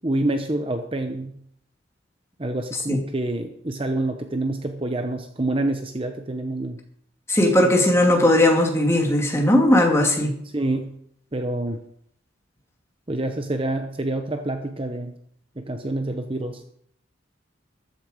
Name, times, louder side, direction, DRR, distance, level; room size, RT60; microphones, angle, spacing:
voice 1, 0.0-1.4 2.4-6.8 10.5-10.9 11.3-11.8 13.1-15.1 15.6-16.6, right 2 dB, 25° right, 6 dB, 0.9 m, -27 dB
voice 2, 7.3-10.3, left 1 dB, 15° left, 1 dB, 2.3 m, -18 dB
14.5 x 11.5 x 5.0 m, 0.68 s
head